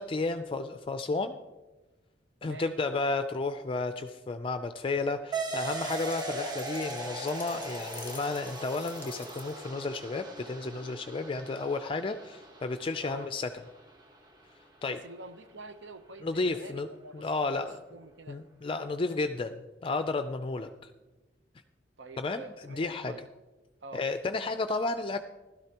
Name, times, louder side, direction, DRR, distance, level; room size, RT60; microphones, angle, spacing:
voice 1, 0.0-1.4 2.4-13.5 14.8-15.0 16.2-16.9 17.1-17.8 18.3-20.7 22.2-23.2 23.9-25.2, left 3 dB, 30° left, 8 dB, 0.4 m, -32 dB
voice 2, 2.4-2.7 13.0-13.3 14.9-18.4 22.0-23.3 23.8-24.1, right 2 dB, 80° right, 10 dB, 0.9 m, -47 dB
sound 1, 5.3-14.3, right 3 dB, 25° right, 1.1 m, -39 dB
sound 2, 5.6-9.8, left 4 dB, 10° left, 1.1 m, -50 dB
16.0 x 12.5 x 2.9 m, 1.2 s
head